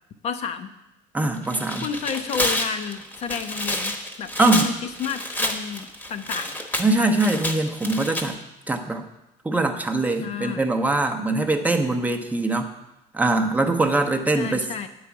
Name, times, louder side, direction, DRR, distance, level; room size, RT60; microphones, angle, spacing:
voice 1, 0.2-0.7 1.8-6.6 10.2-10.7 14.3-14.9, left 7 dB, 45° left, 8 dB, 0.6 m, -31 dB
voice 2, 1.1-1.9 4.4-4.7 6.8-8.4 8.7-9.1 9.4-12.7 13.1-14.7, right 2 dB, 10° right, 4 dB, 0.7 m, -22 dB
Tearing, 1.4-8.3, left 1 dB, 10° left, 1.0 m, -29 dB
9.2 x 4.8 x 7.0 m, 0.92 s
cardioid pair, 140°, 15 cm